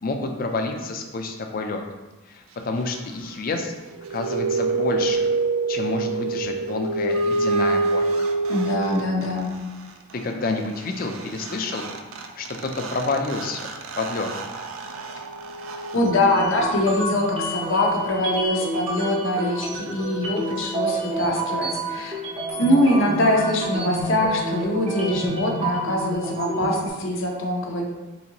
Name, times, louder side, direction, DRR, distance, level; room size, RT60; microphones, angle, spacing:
voice 1, 0.0-1.8 2.3-3.7 4.1-5.3 5.7-8.3 10.1-11.8 12.4-13.7 14.0-14.3, left 3 dB, 40° left, 4 dB, 0.4 m, -28 dB
sound 1, 3.9-9.3 11.1-11.2 11.4-16.9, right 3 dB, 75° right, 0.4 m, -26 dB
voice 2, 8.5-9.6 15.9-22.1 22.6-27.9, left 1 dB, 65° left, 0 dB, 0.7 m, -23 dB
sound 2, 16.0-26.9, right 1 dB, 25° right, 0.6 m, -29 dB
4.1 x 3.6 x 2.9 m, 1.1 s
head